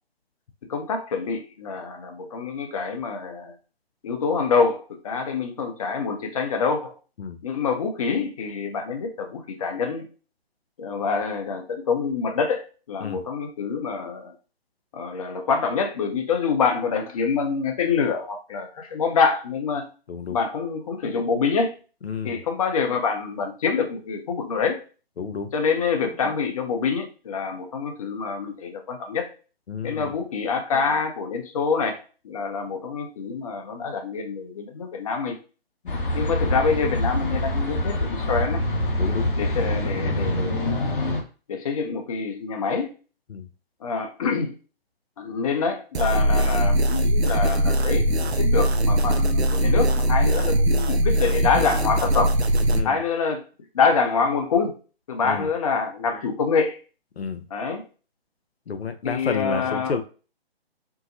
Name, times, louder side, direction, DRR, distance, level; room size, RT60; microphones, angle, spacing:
voice 1, 0.7-3.5 4.0-6.9 7.4-10.1 10.8-14.3 14.9-19.9 20.3-21.7 22.2-24.8 25.5-29.3 29.8-32.0 32.2-35.4 36.1-38.6 39.4-41.1 41.5-42.9 43.8-44.5 45.2-52.3 52.8-53.4 53.7-54.7 55.1-56.8 57.5-57.8 59.0-59.9, left 5 dB, 35° left, 5 dB, 0.6 m, -26 dB
voice 2, 20.1-20.4 22.0-22.4 25.2-25.5 29.7-30.1 35.8-36.0 39.0-39.3 43.3-43.5 52.7-53.0 55.2-55.5 57.2-57.4 58.7-60.0, left 5 dB, 75° left, 8 dB, 0.6 m, -30 dB
sound 1, 35.9-41.2, left 1 dB, 55° left, 1.0 m, -25 dB
sound 2, 45.9-52.8, equal, 85° right, 0.5 m, -21 dB
4.5 x 2.0 x 2.7 m, 0.35 s
figure-of-eight pair, 130°, 31 cm